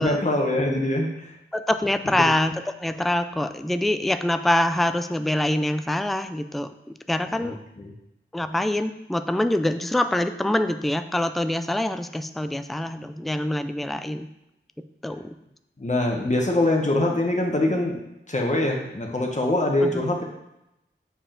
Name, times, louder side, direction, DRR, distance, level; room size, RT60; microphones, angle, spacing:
voice 1, 0.0-1.4 7.3-7.9 15.8-18.0 18.3-20.2, left 1 dB, 35° left, 0 dB, 1.0 m, -24 dB
voice 2, 1.5-2.5 2.8-6.7 7.1-7.6 8.3-14.3 15.0-15.3 19.8-20.0, left 1 dB, ahead, 9 dB, 0.4 m, -25 dB
7.0 x 4.8 x 3.7 m, 0.86 s
wide cardioid pair, 40°, 21 cm